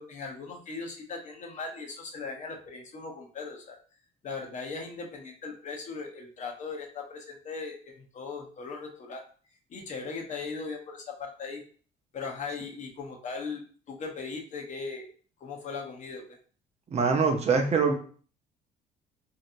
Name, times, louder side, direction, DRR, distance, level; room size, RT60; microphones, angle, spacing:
voice 1, 0.0-3.8 4.2-9.2 9.7-11.6 12.1-15.1 15.4-16.2, left 4 dB, 45° left, 2 dB, 0.8 m, -38 dB
voice 2, 16.9-17.9, right 5 dB, 40° right, 4 dB, 0.6 m, -23 dB
3.1 x 2.7 x 2.5 m, 0.42 s
cardioid pair, 110°, 17 cm